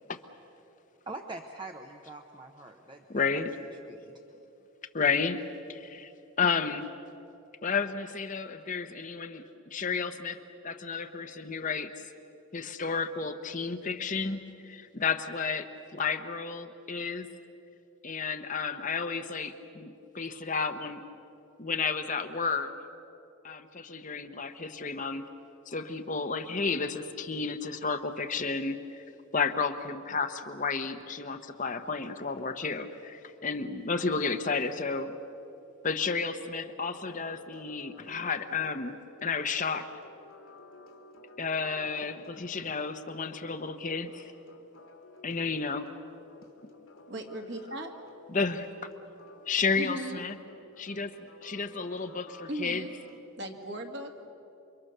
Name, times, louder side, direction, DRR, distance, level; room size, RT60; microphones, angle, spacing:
voice 1, 1.1-3.4 3.8-4.1, right 2 dB, 20° right, 3 dB, 0.9 m, -44 dB
voice 2, 3.1-3.5 4.9-5.4 5.7-6.1 6.4-6.9 7.6-9.4 9.7-10.4 10.6-11.9 12.5-17.3 18.0-21.0 21.6-22.7 23.4-25.3 25.7-29.0 29.3-35.2 35.8-39.9 41.4-44.3 45.2-45.9 48.3-48.7 49.5-50.4 50.8-51.1 51.4-52.8, left 5 dB, 35° left, 8 dB, 0.9 m, -32 dB
sound 1, 36.9-53.2, left 3 dB, 85° left, 2.8 m, -54 dB
voice 3, 47.1-47.9 49.8-50.2 52.5-52.9 53.4-54.3, right 1 dB, 50° right, 3 dB, 2.2 m, -37 dB
29.0 x 24.5 x 6.7 m, 2.8 s
head